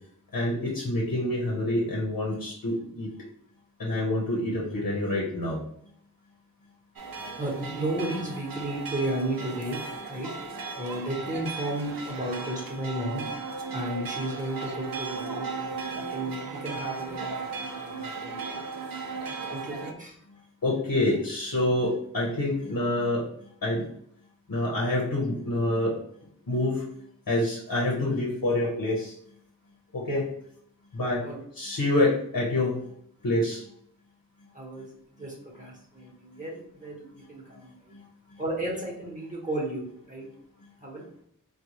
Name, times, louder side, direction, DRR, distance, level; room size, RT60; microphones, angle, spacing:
voice 1, 0.3-3.1 3.8-5.6 20.6-23.2 23.6-23.8 24.5-26.0 26.5-26.8 27.3-29.1 29.9-30.3 30.9-31.2 31.5-32.8 33.2-33.7 37.9-38.0, left 1 dB, 85° left, -4 dB, 0.9 m, -27 dB
sound 1, 7.0-19.9, right 4 dB, 85° right, 0.5 m, -36 dB
voice 2, 7.4-10.3 10.8-13.3 13.7-18.7 19.5-20.2 31.2-31.4 34.5-37.7 38.4-40.3 40.8-41.0, right 1 dB, 25° right, -3 dB, 1.0 m, -34 dB
3.7 x 2.3 x 3.0 m, 0.68 s
wide cardioid pair, 45°, 34 cm